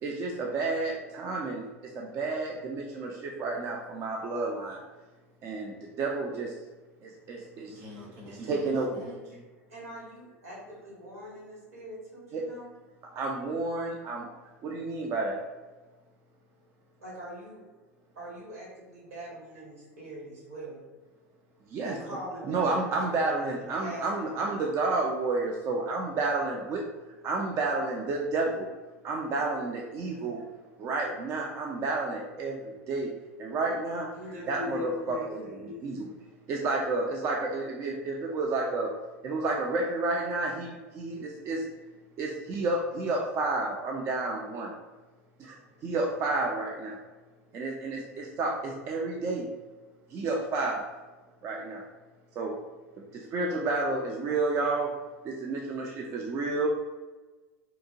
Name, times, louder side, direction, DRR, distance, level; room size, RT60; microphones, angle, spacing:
voice 1, 0.0-4.8 5.4-6.6 7.0-7.8 8.5-9.1 12.3-12.4 13.2-14.3 14.6-15.5 21.7-22.0 22.4-26.9 27.2-28.7 29.0-30.4 30.8-34.1 34.5-36.1 36.5-38.9 39.2-41.6 42.2-44.7 45.4-47.0 47.5-49.5 50.1-50.9 51.4-51.9 52.3-52.6 53.1-54.9 55.2-56.7, right 3 dB, 35° right, -1 dB, 0.4 m, -31 dB
voice 2, 7.6-9.3, left 1 dB, 55° right, -2 dB, 0.8 m, -46 dB
voice 3, 9.7-12.7 17.0-17.7 18.1-20.9 21.8-24.6 30.0-30.4 34.1-35.8, left 1 dB, 75° right, -4 dB, 1.2 m, -42 dB
2.8 x 2.1 x 2.6 m, 1.2 s
figure-of-eight pair, 80°, 8 cm